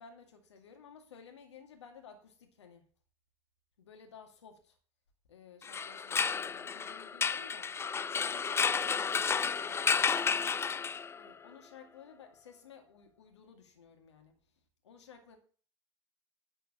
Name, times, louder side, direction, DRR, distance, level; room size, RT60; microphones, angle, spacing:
voice 1, 0.0-2.8 3.8-4.7 5.3-7.7 8.1-9.9 11.2-14.3 14.8-15.4, left 6 dB, 80° left, 4 dB, 2.3 m, -55 dB
sound 1, 5.6-11.3, left 6 dB, 15° left, 0.4 m, -31 dB
11.0 x 4.6 x 7.5 m, 0.42 s
hypercardioid pair, 85°, 15 cm